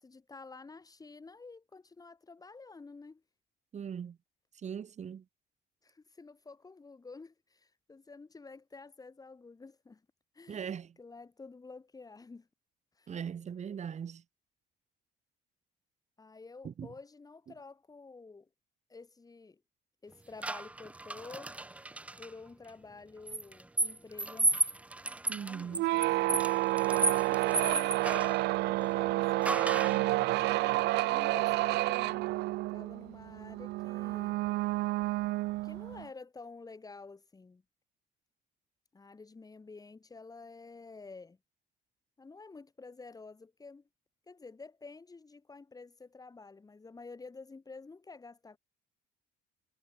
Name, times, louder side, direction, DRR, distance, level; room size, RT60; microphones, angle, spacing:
voice 1, 0.0-3.2 5.8-10.0 10.3-12.5 13.0-13.1 16.2-18.5 18.9-19.6 20.0-21.5 22.2-24.6 25.3-26.4 26.6-32.3 32.7-34.4 35.6-37.6 38.9-41.4 42.2-43.8 44.3-48.6, left 4 dB, 20° left, 5.3 m, -50 dB
voice 2, 3.7-4.2 4.5-5.2 10.5-11.0 13.1-14.2 16.6-16.9 25.3-25.8, right 8 dB, 45° right, 4.6 m, -40 dB
sound 1, 20.4-22.3 23.3-28.4 29.4-30.1, right 2 dB, 10° right, 0.4 m, -33 dB
sound 2, 25.7-36.1, right 19 dB, 85° right, 0.8 m, -30 dB
cardioid pair, 110°, 17 cm